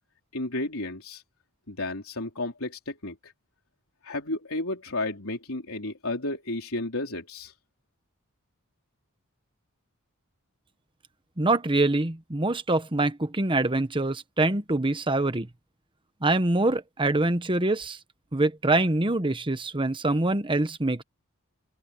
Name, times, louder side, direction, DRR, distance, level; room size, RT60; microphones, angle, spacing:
voice 1, 0.3-1.2 1.7-3.3 4.0-7.5, left 2 dB, 70° left, 4.2 m, -32 dB
voice 2, 11.4-15.5 16.2-18.0 18.3-21.0, right 2 dB, 25° right, 1.1 m, -25 dB
open air
head